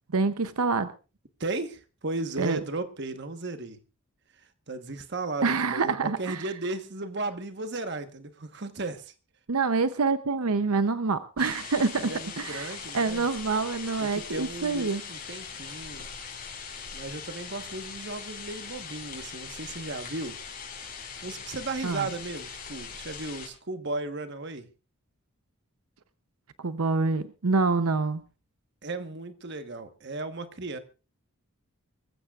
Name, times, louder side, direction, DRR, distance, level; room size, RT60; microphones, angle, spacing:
voice 1, 0.1-0.9 2.4-2.6 5.4-6.4 9.5-15.0 21.8-22.1 26.6-28.2, right 4 dB, 85° right, 12 dB, 0.7 m, -26 dB
voice 2, 1.4-3.8 4.7-9.1 12.0-13.3 14.0-16.1 16.4-16.5 16.9-20.4 21.2-24.7 28.8-30.8, right 2 dB, 50° right, 9 dB, 1.2 m, -35 dB
sound 1, 11.4-23.5, left 6 dB, 40° left, 5.3 m, -41 dB
25.0 x 15.0 x 2.4 m, 0.33 s
head